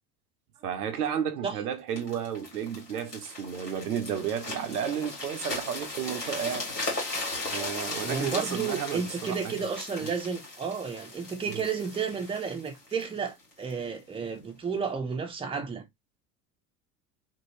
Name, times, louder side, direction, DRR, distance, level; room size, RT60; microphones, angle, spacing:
voice 1, 0.6-6.7 7.5-9.6 11.5-11.7, right 8 dB, 75° right, 0.8 m, -32 dB
sound 1, 2.0-13.8 14.4-14.6, left 2 dB, 90° left, 1.8 m, -37 dB
voice 2, 8.0-15.8, right 5 dB, 10° right, 0.7 m, -32 dB
2.9 x 2.8 x 2.8 m
figure-of-eight pair, 70°, 47 cm